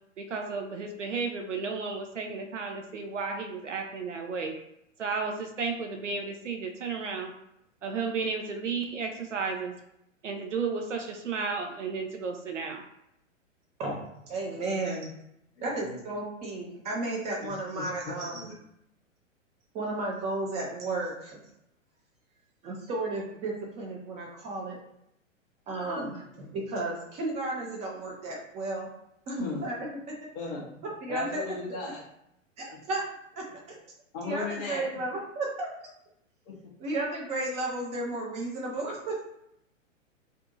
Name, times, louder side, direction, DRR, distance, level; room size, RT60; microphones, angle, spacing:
voice 1, 0.2-4.6 5.0-7.3 7.8-9.7 10.2-12.8, right 4 dB, 65° right, 4 dB, 0.7 m, -33 dB
voice 2, 14.3-15.1 15.6-18.5 19.7-21.4 22.6-24.8 25.7-28.9 29.3-29.8 31.0-31.4 32.6-33.0 33.7-33.8 34.2-35.9 36.8-39.1, right 2 dB, 15° right, -2 dB, 0.8 m, -33 dB
voice 3, 15.6-16.0 17.4-18.5 29.4-29.6 30.3-30.7 31.1-32.0 34.1-34.9 36.5-36.6, left 3 dB, 20° left, -3 dB, 0.6 m, -37 dB
2.6 x 2.5 x 3.8 m, 0.77 s
figure-of-eight pair, 110°, 39 cm